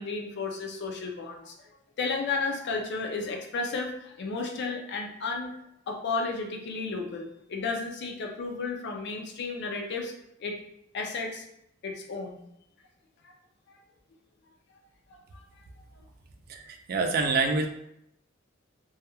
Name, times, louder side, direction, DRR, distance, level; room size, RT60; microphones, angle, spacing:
voice 1, 0.0-1.5 2.0-5.5 5.9-10.1 10.4-10.6 10.9-11.4 11.8-12.4 13.2-13.3 13.7-13.8 15.3-15.6, left 4 dB, 60° left, 2 dB, 0.4 m, -33 dB
voice 2, 16.5-17.7, right 3 dB, 50° right, 4 dB, 0.3 m, -26 dB
2.2 x 2.1 x 2.9 m, 0.77 s
head